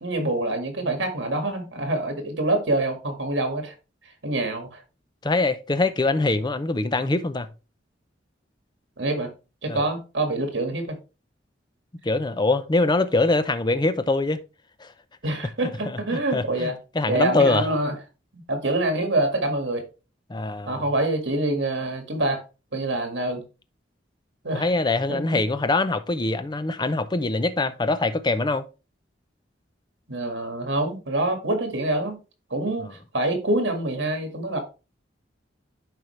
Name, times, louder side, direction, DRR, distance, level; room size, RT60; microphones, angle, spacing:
voice 1, 0.0-3.7 4.2-4.8 9.0-9.3 9.6-10.9 15.2-16.8 17.1-17.9 18.3-19.8 20.7-22.4 22.7-23.4 24.4-24.7 25.1-25.4 30.1-32.2 32.5-32.9 33.1-34.6, right 2 dB, 70° right, 1.9 m, -26 dB
voice 2, 5.2-7.5 9.7-9.9 12.0-14.4 14.8-14.9 15.9-17.7 20.3-20.8 24.5-28.6, left 2 dB, 25° left, 0.6 m, -23 dB
10.5 x 4.6 x 3.2 m
head